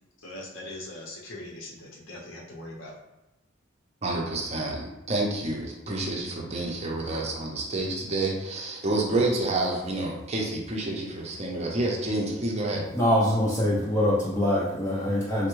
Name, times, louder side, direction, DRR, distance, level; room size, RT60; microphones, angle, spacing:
voice 1, 0.2-2.9, left 1 dB, 80° left, -3 dB, 0.7 m, -41 dB
voice 2, 4.0-12.8, right 2 dB, 35° right, -1 dB, 0.5 m, -29 dB
voice 3, 12.9-15.5, left 1 dB, 15° left, -7 dB, 0.5 m, -24 dB
3.4 x 2.1 x 3.0 m, 0.98 s
head